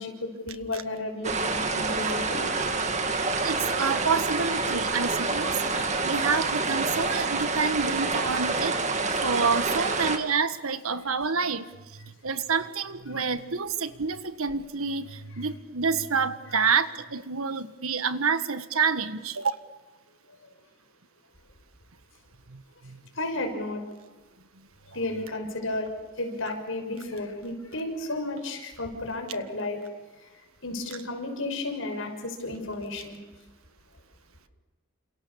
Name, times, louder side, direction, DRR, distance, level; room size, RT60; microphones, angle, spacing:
voice 1, 0.0-2.5 23.2-23.8 24.9-25.9 26.2-29.8 30.6-33.2, left 2 dB, 70° left, 4 dB, 6.3 m, -33 dB
sound 1, 1.2-10.2, right 3 dB, 30° right, 2.2 m, -27 dB
voice 2, 3.4-8.8 9.2-11.7 12.0-19.5 22.5-23.0, right 5 dB, 85° right, 11 dB, 1.5 m, -28 dB
30.0 x 27.5 x 7.1 m, 1.2 s
head